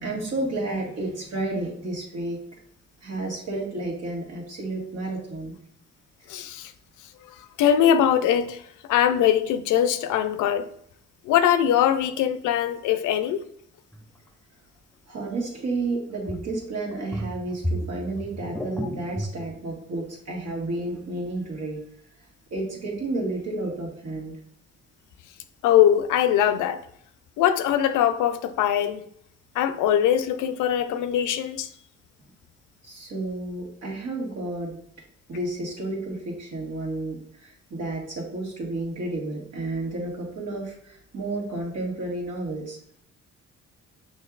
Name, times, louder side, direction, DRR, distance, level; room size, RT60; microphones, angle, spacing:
voice 1, 0.0-2.4 3.0-5.5 15.1-21.8 22.5-24.4 32.8-34.8 35.3-42.8, right 2 dB, 60° right, 1.6 m, -31 dB
voice 2, 6.3-6.7 7.6-8.6 8.9-10.7 11.3-13.4 25.6-26.8 27.4-29.0 29.6-31.7, left 10 dB, 90° left, 0.5 m, -21 dB
sound 1, 13.9-14.0 16.3-16.6 16.9-19.3, equal, 5° left, 0.4 m, -32 dB
6.2 x 2.7 x 2.4 m
cardioid pair, 90°, 30 cm